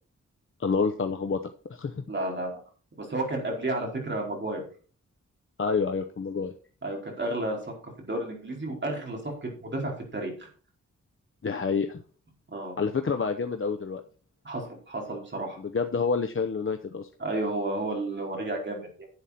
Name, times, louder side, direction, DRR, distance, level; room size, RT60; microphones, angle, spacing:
voice 1, 0.6-2.0 5.6-6.5 11.4-12.0 12.8-14.0 15.6-17.1, left 5 dB, 45° left, 6 dB, 0.8 m, -28 dB
voice 2, 2.1-2.5 3.0-4.6 6.8-7.7 8.1-10.5 12.5-12.8 14.4-15.6 17.2-19.1, right 2 dB, 40° right, 0 dB, 4.5 m, -32 dB
11.0 x 8.3 x 4.2 m, 0.39 s
wide cardioid pair, 120°, 30 cm